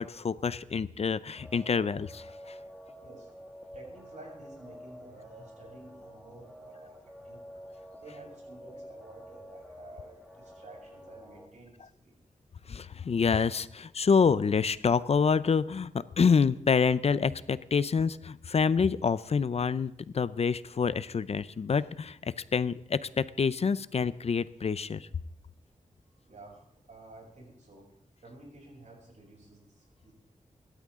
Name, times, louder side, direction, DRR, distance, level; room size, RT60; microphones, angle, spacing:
voice 1, 0.0-2.6 12.7-25.1, left 5 dB, 50° left, 16 dB, 0.5 m, -27 dB
sound 1, 1.3-11.5, equal, ahead, 2.0 m, -49 dB
voice 2, 3.7-7.5 7.9-12.2 26.0-27.9 28.2-30.1, right 2 dB, 65° right, -2 dB, 7.4 m, -52 dB
25.5 x 13.0 x 3.7 m, 0.70 s
wide cardioid pair, 145°, 13 cm